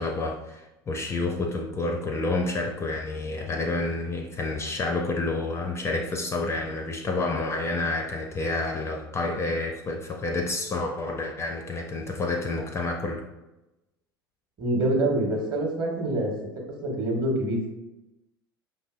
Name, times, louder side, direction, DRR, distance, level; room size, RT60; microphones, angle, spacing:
voice 1, 0.0-13.2, left 2 dB, 20° left, 3 dB, 0.4 m, -29 dB
voice 2, 14.6-16.3 16.8-17.7, right 1 dB, 35° right, 0 dB, 1.0 m, -25 dB
5.3 x 2.7 x 2.4 m, 0.99 s
figure-of-eight pair, 75°, 12 cm